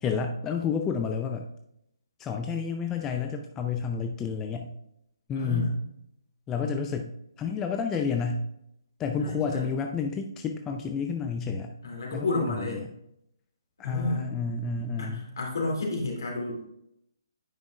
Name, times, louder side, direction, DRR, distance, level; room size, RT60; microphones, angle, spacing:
voice 1, 0.0-1.4 2.2-4.7 5.3-5.7 6.5-8.4 9.0-11.7 12.1-12.9 13.8-15.3, left 5 dB, 15° left, 4 dB, 0.4 m, -30 dB
voice 2, 5.4-5.8 9.2-9.7 11.8-12.8 13.8-14.3 15.0-16.7, left 2 dB, 65° left, -1 dB, 2.5 m, -31 dB
9.5 x 5.2 x 2.4 m, 0.77 s
figure-of-eight pair, 140°, 2 cm